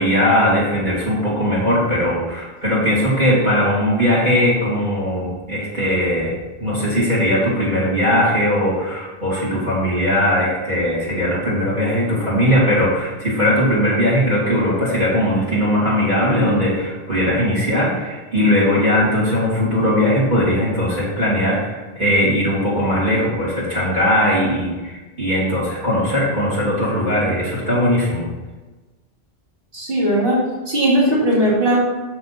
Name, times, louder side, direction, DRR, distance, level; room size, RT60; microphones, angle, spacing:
voice 1, 0.0-28.3, equal, 50° right, -8 dB, 2.9 m, -19 dB
voice 2, 29.7-30.4 30.7-31.8, right 1 dB, 65° right, -6 dB, 2.4 m, -17 dB
7.0 x 6.7 x 4.1 m, 1.2 s
omnidirectional pair, 1.0 m